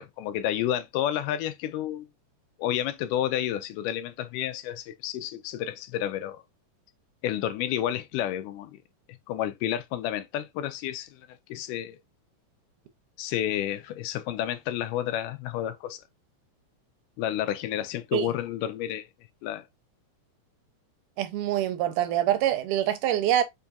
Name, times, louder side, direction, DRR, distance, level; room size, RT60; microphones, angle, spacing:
voice 1, 0.0-2.1 2.6-6.4 7.2-8.7 9.3-11.2 11.5-12.0 13.2-16.0 17.2-19.1 19.4-19.7, left 11 dB, 85° left, 2.1 m, -30 dB
voice 2, 21.2-23.4, right 11 dB, 85° right, 2.2 m, -25 dB
5.2 x 2.7 x 2.3 m
omnidirectional pair, 3.7 m